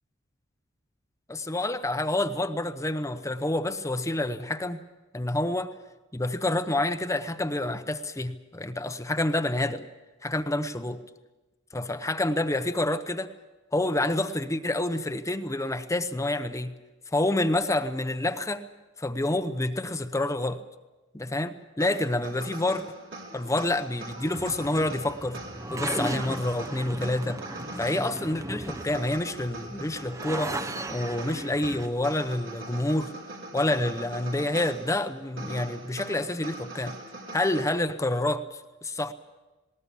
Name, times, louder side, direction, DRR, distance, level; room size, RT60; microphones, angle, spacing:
voice 1, 1.3-4.8 5.1-5.7 6.1-9.8 10.2-11.0 11.7-13.3 13.7-16.7 17.1-18.7 19.0-20.6 21.1-22.8 23.3-25.4 25.7-27.4 27.8-30.6 30.9-33.1 33.5-37.0 37.3-39.1, left 1 dB, 15° left, 0.8 m, -28 dB
sound 1, 21.8-37.7, right 2 dB, 70° right, 3.7 m, -42 dB
sound 2, 24.1-31.9, right 1 dB, 15° right, 0.7 m, -37 dB
19.5 x 19.0 x 8.4 m
head